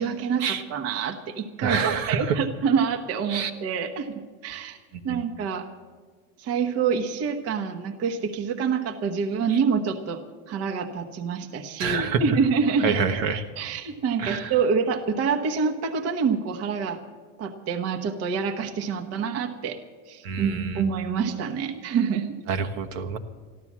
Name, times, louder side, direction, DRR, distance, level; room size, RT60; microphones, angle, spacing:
voice 1, 0.0-4.8 5.0-5.7 6.4-10.2 10.5-13.0 13.6-17.0 17.4-19.8 20.1-22.3, right 6 dB, 35° right, 5 dB, 1.3 m, -26 dB
voice 2, 1.6-2.2 3.3-3.5 5.1-5.2 9.5-9.6 11.8-12.2 12.8-13.4 14.2-14.5 20.2-20.8 22.5-23.2, right 6 dB, 65° right, 5 dB, 1.4 m, -27 dB
14.5 x 12.0 x 7.4 m, 1.5 s
supercardioid pair, 150°, 42 cm